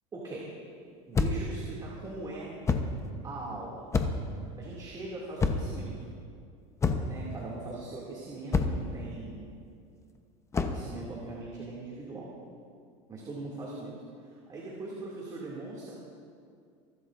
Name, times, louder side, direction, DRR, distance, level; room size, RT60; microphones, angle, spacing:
voice 1, 0.1-0.5 1.1-2.5 3.2-3.9 4.6-6.0 7.0-9.5 10.5-12.3 13.1-15.9, right 2 dB, 25° right, -5 dB, 2.4 m, -41 dB
sound 1, 1.1-1.6 2.7-3.0 3.9-4.3 5.4-5.8 6.8-7.2 8.5-8.9 10.5-10.9, left 4 dB, 20° left, 0.8 m, -27 dB
25.5 x 12.0 x 2.6 m, 2.3 s
supercardioid pair, 125°, 16 cm